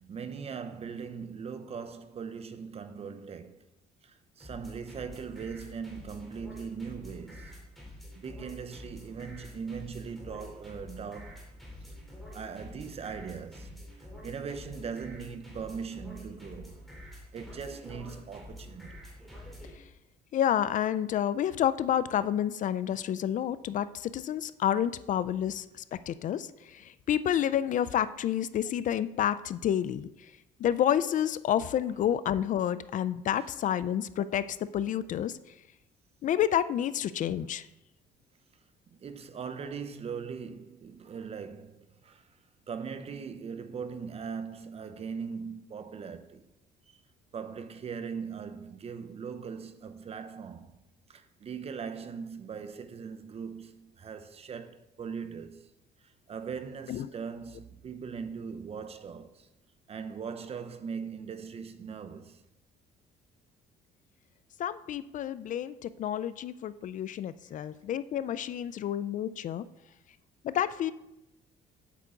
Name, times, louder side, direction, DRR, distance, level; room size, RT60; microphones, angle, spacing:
voice 1, 0.0-3.6 4.0-7.6 8.1-11.5 12.3-13.9 14.2-16.8 17.3-19.0 39.0-42.3 42.7-46.4 46.9-47.0 47.3-50.8 51.1-55.7 56.3-59.5 59.9-62.4, right 6 dB, 35° right, 0.8 m, -40 dB
sound 1, 4.4-19.8, left 1 dB, ahead, 3.4 m, -47 dB
voice 2, 20.3-25.6 25.9-30.1 30.6-35.4 36.2-37.6 56.9-57.1 64.6-69.6 70.4-70.9, left 10 dB, 50° left, 0.4 m, -29 dB
8.3 x 8.0 x 3.8 m
cardioid pair, 110°, 17 cm